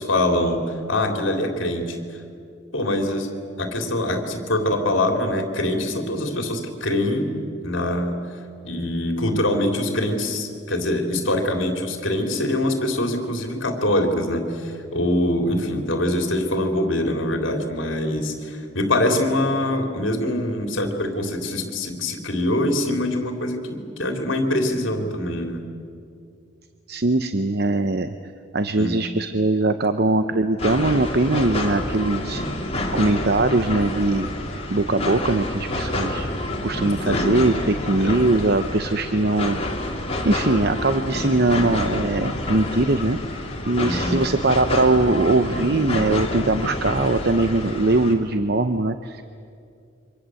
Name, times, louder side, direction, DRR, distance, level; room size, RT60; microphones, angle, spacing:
voice 1, 0.0-2.0 2.7-3.3 3.6-8.2 8.6-25.6 28.8-29.0 37.0-37.3 38.0-38.2 43.8-44.2, left 1 dB, 65° left, 4 dB, 3.4 m, -24 dB
voice 2, 26.9-28.2 28.5-32.4 32.9-34.3 34.7-36.3 36.6-39.6 40.2-43.2 43.7-49.2, right 2 dB, 50° right, 9 dB, 0.8 m, -21 dB
sound 1, 30.6-48.1, left 1 dB, 30° left, 3.1 m, -28 dB
27.5 x 25.0 x 7.8 m, 2.4 s
head